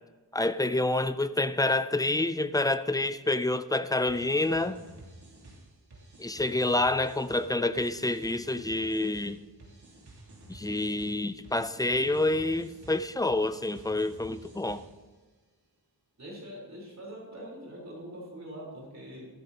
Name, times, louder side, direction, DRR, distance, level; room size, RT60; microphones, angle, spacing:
voice 1, 0.3-4.8 6.2-9.4 10.5-14.8, left 2 dB, 10° left, 0.3 m, -28 dB
sound 1, 4.1-15.1, right 1 dB, 85° right, 3.0 m, -51 dB
voice 2, 16.2-19.3, equal, 40° right, 4.0 m, -43 dB
15.0 x 13.0 x 2.9 m
wide cardioid pair, 150°, 39 cm